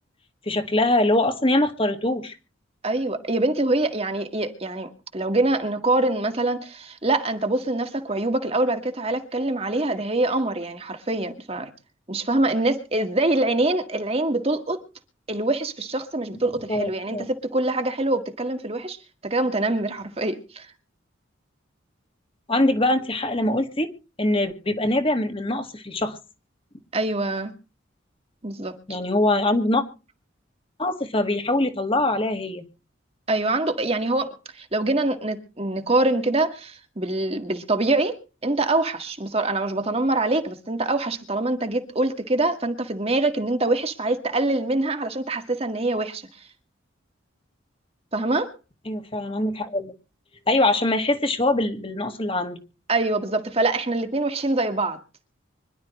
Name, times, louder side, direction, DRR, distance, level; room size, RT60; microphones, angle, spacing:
voice 1, 0.5-2.4 16.7-17.3 22.5-23.9 24.2-26.2 28.9-29.8 30.8-32.7 48.9-49.9 50.5-52.6, left 1 dB, 30° left, 1.9 m, -23 dB
voice 2, 2.8-11.7 12.1-14.8 15.3-19.0 19.2-20.7 26.9-27.5 28.4-28.8 33.3-46.5 48.1-48.5 52.9-55.0, right 2 dB, 30° right, 1.8 m, -24 dB
25.5 x 12.0 x 3.2 m
head